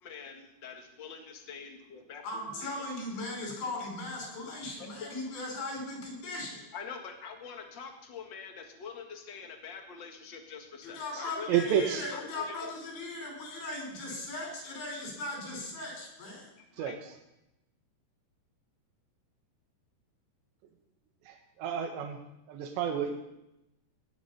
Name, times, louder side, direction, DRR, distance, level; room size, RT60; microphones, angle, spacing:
voice 1, 0.0-2.9 4.8-5.1 6.7-11.8 12.1-12.7 16.6-17.0, left 6 dB, 50° left, 3 dB, 1.3 m, -45 dB
voice 2, 2.2-6.6 10.8-16.5, left 2 dB, 90° left, -1 dB, 7.3 m, -38 dB
voice 3, 11.1-12.1 16.8-17.1 21.3-22.2 22.5-23.2, right 8 dB, 85° right, 4 dB, 3.6 m, -31 dB
19.5 x 11.0 x 5.6 m, 0.88 s
omnidirectional pair, 4.9 m